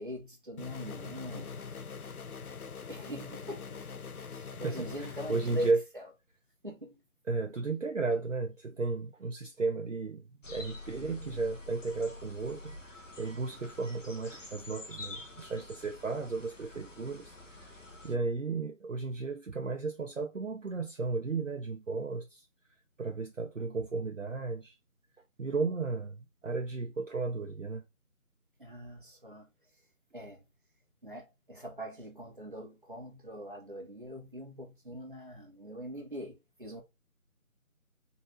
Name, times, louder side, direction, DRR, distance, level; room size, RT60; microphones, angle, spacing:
voice 1, 0.0-1.5 2.9-3.7 4.3-5.7 5.9-6.0 6.6-7.0 28.6-29.5 30.1-30.4 31.0-36.8, equal, 35° right, 1.1 m, -42 dB
sound 1, 0.6-5.7, left 5 dB, 85° left, 0.7 m, -43 dB
voice 2, 4.6-5.8 7.3-17.8 18.0-22.5 23.0-24.8 25.4-27.8, right 3 dB, 60° right, 0.7 m, -34 dB
sound 2, 10.4-18.1, left 2 dB, 60° left, 1.0 m, -47 dB
4.1 x 2.7 x 3.8 m
figure-of-eight pair, 175°, 42 cm